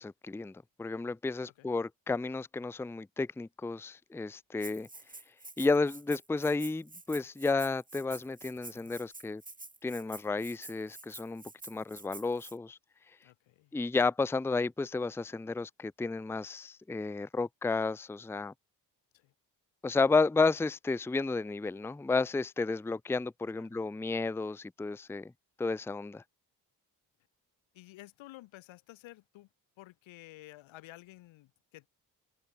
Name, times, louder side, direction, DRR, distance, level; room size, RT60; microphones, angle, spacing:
voice 1, 0.0-4.9 5.6-9.4 9.8-12.8 13.7-18.5 19.8-25.3 25.6-26.2, left 3 dB, 5° left, 0.5 m, -32 dB
Rattle (instrument), 4.6-12.5, right 2 dB, 15° right, 2.3 m, -48 dB
voice 2, 13.2-13.7 19.1-19.3 23.5-23.8 27.7-29.5 29.8-31.9, left 17 dB, 80° left, 1.3 m, -52 dB
supercardioid pair, 45°, 46 cm